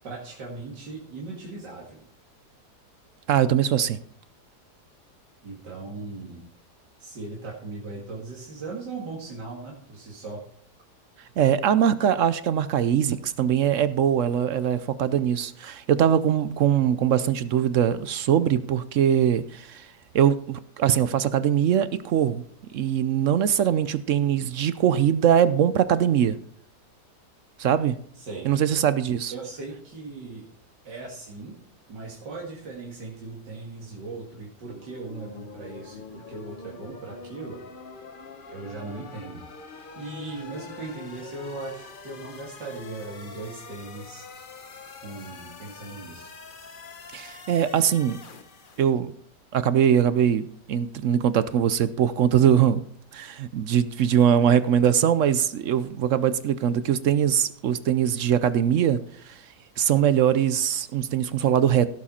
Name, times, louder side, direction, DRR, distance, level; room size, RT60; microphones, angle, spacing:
voice 1, 0.0-2.0 5.4-6.4 7.0-10.4 28.2-28.5 29.3-30.5 30.8-31.6 31.9-37.6 38.5-39.4 39.7-44.2 45.0-46.3, right 3 dB, 85° right, -3 dB, 2.7 m, -38 dB
voice 2, 3.3-4.0 11.4-19.9 20.1-22.4 22.7-26.4 27.6-28.0 28.4-29.3 47.1-48.2 48.8-49.1 49.5-52.8 53.1-59.0 59.3-59.4 59.8-61.9, right 9 dB, 65° right, 14 dB, 0.8 m, -22 dB
sound 1, 34.7-48.8, left 4 dB, 35° left, 1.0 m, -44 dB
16.5 x 7.3 x 4.3 m, 0.62 s
omnidirectional pair, 1.8 m